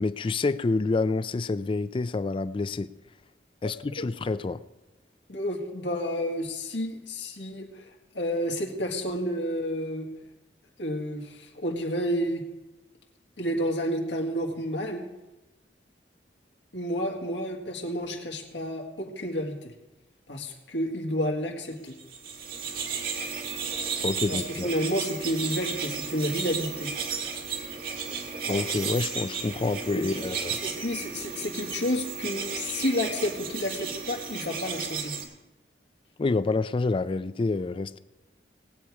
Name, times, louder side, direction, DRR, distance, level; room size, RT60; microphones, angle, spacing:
voice 1, 0.0-2.9 3.6-4.6 24.0-24.7 28.5-30.6 36.2-38.0, left 3 dB, 30° left, 0.3 m, -28 dB
voice 2, 5.3-7.9 8.1-10.1 10.8-12.4 13.4-15.1 16.7-19.7 20.3-21.9 24.3-26.9 30.0-30.2 30.6-35.2, equal, 85° left, 1.8 m, -30 dB
sound 1, 22.0-35.2, right 5 dB, 55° right, 1.8 m, -34 dB
19.0 x 8.4 x 4.8 m
head